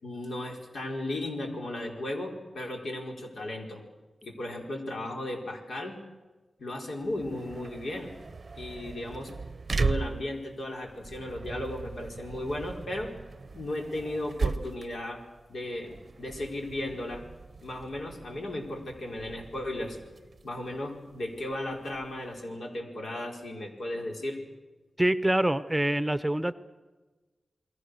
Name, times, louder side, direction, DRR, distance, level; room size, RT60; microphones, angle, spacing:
voice 1, 0.0-3.8 4.2-6.0 6.6-8.1 8.6-9.3 9.8-13.1 13.5-15.2 15.5-17.2 17.6-20.0 20.4-24.4, left 1 dB, 75° left, 1 dB, 4.7 m, -35 dB
sound 1, 7.0-22.4, right 4 dB, 50° right, 0.7 m, -38 dB
voice 2, 25.0-26.5, right 1 dB, 10° right, 13 dB, 0.9 m, -25 dB
29.0 x 21.5 x 6.6 m, 1.2 s
wide cardioid pair, 75°, 0 cm